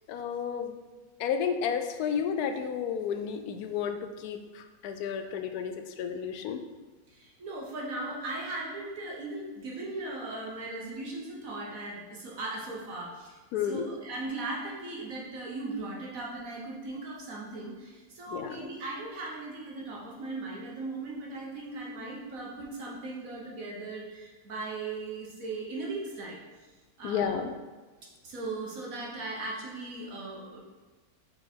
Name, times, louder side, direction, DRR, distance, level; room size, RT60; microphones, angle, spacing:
voice 1, 0.1-0.8 1.2-6.6 13.5-13.9 18.3-18.6 27.0-27.5, left 7 dB, 90° left, 7 dB, 1.1 m, -32 dB
voice 2, 7.1-13.4 13.6-26.7 27.0-27.3 28.2-30.6, right 2 dB, 65° right, -3 dB, 1.4 m, -38 dB
4.8 x 4.5 x 4.3 m, 1.3 s
omnidirectional pair, 1.6 m